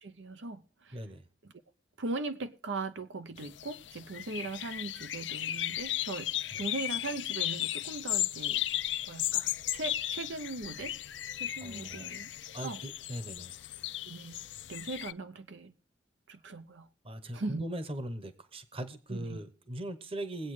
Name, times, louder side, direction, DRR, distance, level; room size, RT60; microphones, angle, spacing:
voice 1, 0.0-1.0 1.4-1.5 2.0-6.3 6.6-8.6 9.1-10.9 11.3-12.3 12.6-12.8 14.0-14.4 14.7-15.7 16.3-16.9 17.3-17.7 19.1-19.4, right 3 dB, 85° right, 0.8 m, -39 dB
voice 2, 0.9-1.2 6.5-6.6 11.6-12.1 12.5-13.6 17.0-20.5, right 1 dB, 30° right, 1.0 m, -40 dB
sound 1, 3.4-15.1, left 13 dB, 80° left, 0.6 m, -35 dB
21.5 x 8.4 x 3.2 m
head